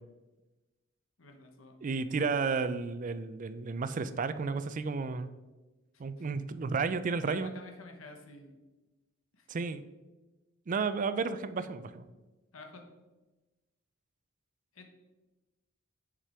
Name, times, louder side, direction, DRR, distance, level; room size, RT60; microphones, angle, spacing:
voice 1, 1.2-1.8 6.2-6.3 7.3-8.6 9.3-9.5 12.5-12.9 14.7-14.9, left 3 dB, 90° left, 3 dB, 1.2 m, -50 dB
voice 2, 1.8-5.3 6.0-7.5 9.5-9.8 10.7-12.0, right 4 dB, 40° right, 12 dB, 0.4 m, -32 dB
7.5 x 5.1 x 4.4 m, 1.1 s
head